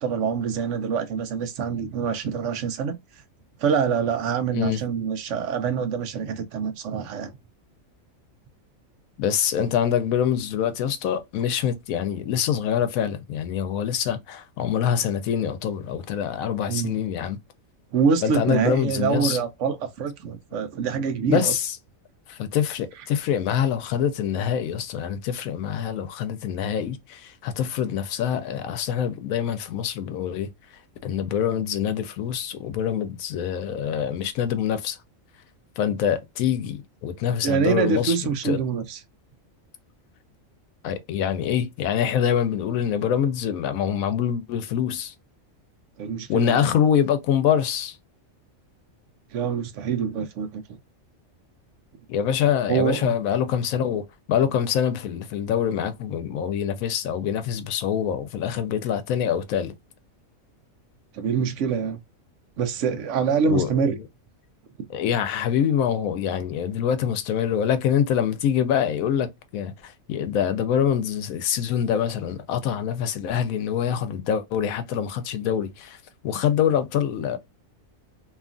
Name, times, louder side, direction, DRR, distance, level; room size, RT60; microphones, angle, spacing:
voice 1, 0.0-3.0 3.6-7.3 16.7-16.9 17.9-21.5 37.4-39.0 46.0-46.7 49.3-50.6 52.7-53.1 61.1-62.0 62.6-64.0, right 6 dB, 70° right, 0.9 m, -25 dB
voice 2, 4.5-4.8 9.2-17.4 18.2-19.4 21.3-21.7 22.3-30.5 31.0-35.0 35.8-38.2 38.4-38.6 40.8-45.1 46.3-48.0 52.1-59.7 63.5-64.0 64.9-76.0 76.2-77.4, left 9 dB, 85° left, 1.0 m, -25 dB
2.9 x 2.3 x 2.5 m
omnidirectional pair, 1.4 m